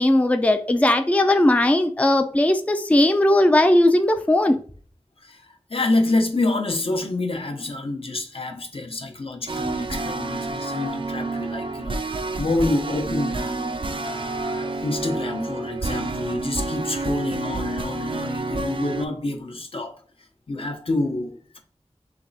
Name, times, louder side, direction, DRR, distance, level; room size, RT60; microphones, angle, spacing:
voice 1, 0.0-4.6, left 1 dB, 10° left, 0.4 m, -18 dB
voice 2, 5.2-13.5 14.0-19.9 20.5-21.6, left 2 dB, 55° left, 0.8 m, -27 dB
sound 1, 9.5-19.1, right 3 dB, 50° right, 0.4 m, -29 dB
3.4 x 3.2 x 4.0 m
wide cardioid pair, 70°, 11 cm